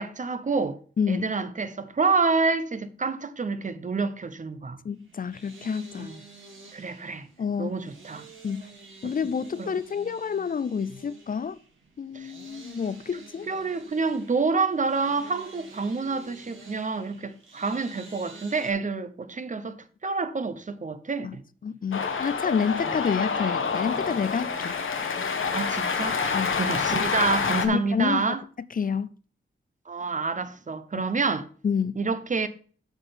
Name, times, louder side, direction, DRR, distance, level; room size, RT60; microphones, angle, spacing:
voice 1, 0.0-0.8 1.1-4.8 6.0-6.2 6.7-7.3 7.6-8.3 9.0-9.2 9.6-9.7 12.1-12.3 13.5-21.4 25.5-28.4 29.9-31.5 31.9-32.5, right 4 dB, 35° right, 0.8 m, -28 dB
voice 2, 1.0-1.3 4.8-6.1 7.4-7.7 8.4-8.7 9.0-11.6 12.0-13.5 21.2-21.4 21.6-24.8 26.3-26.5 27.6-28.2 28.7-29.1 31.0-31.1 31.6-32.0, left 6 dB, 40° left, 0.4 m, -28 dB
sound 1, 5.0-18.7, right 4 dB, 70° right, 2.6 m, -49 dB
Cheering, 21.9-27.7, left 5 dB, 70° left, 1.3 m, -27 dB
8.2 x 5.8 x 5.1 m
wide cardioid pair, 100°, 21 cm